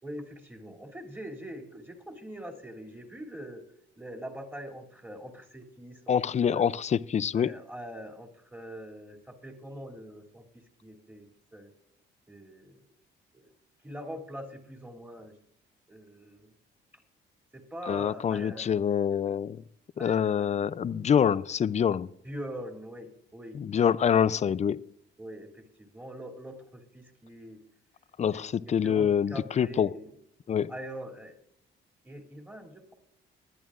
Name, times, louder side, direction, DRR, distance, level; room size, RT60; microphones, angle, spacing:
voice 1, 0.0-3.6 4.0-6.7 7.3-11.3 11.5-11.7 12.3-12.8 13.3-13.5 13.8-15.3 15.9-16.5 17.5-18.8 20.0-20.8 22.2-23.6 25.2-27.6 28.3-30.1 30.7-31.3 32.0-32.9, equal, 10° right, 2.9 m, -43 dB
voice 2, 6.1-7.5 17.9-19.6 20.0-22.1 23.5-24.8 28.2-29.9 30.5-30.7, left 8 dB, 35° left, 0.4 m, -26 dB
19.5 x 11.0 x 2.5 m
cardioid pair, 90°, 20 cm